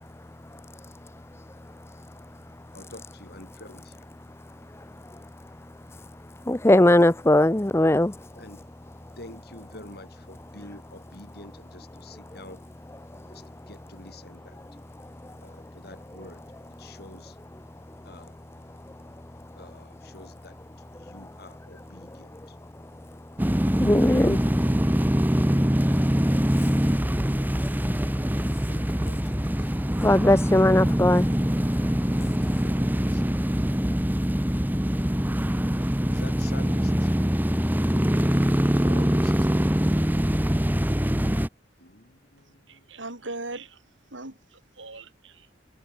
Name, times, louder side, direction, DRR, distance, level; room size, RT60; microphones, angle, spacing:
voice 1, 2.7-4.0 8.3-8.6 9.2-12.6 13.2-14.6 15.4-16.4 16.8-17.4 18.0-18.3 19.6-20.6 20.9-22.6 28.7-29.9 32.2-34.0 36.1-37.1 38.8-39.7 41.8-43.0, left 2 dB, 55° left, 4.9 m, -48 dB
voice 2, 6.5-8.1 23.8-24.4 30.0-31.3, left 1 dB, 15° left, 0.6 m, -19 dB
sound 1, 23.4-41.5, equal, 10° right, 1.3 m, -23 dB
voice 3, 42.7-43.8 44.1-45.5, right 2 dB, 85° right, 5.9 m, -39 dB
head